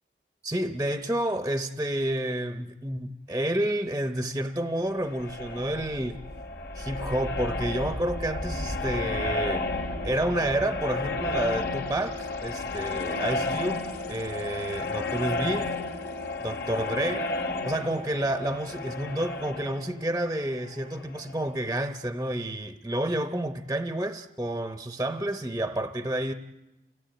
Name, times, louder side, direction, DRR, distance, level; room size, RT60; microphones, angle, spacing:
voice 1, 0.4-6.2 6.7-9.7 10.0-15.7 16.4-17.3 17.6-26.3, right 1 dB, 15° right, 0.8 m, -30 dB
sound 1, 4.8-21.4, left 2 dB, 75° left, 2.7 m, -32 dB
29.0 x 16.0 x 9.1 m
head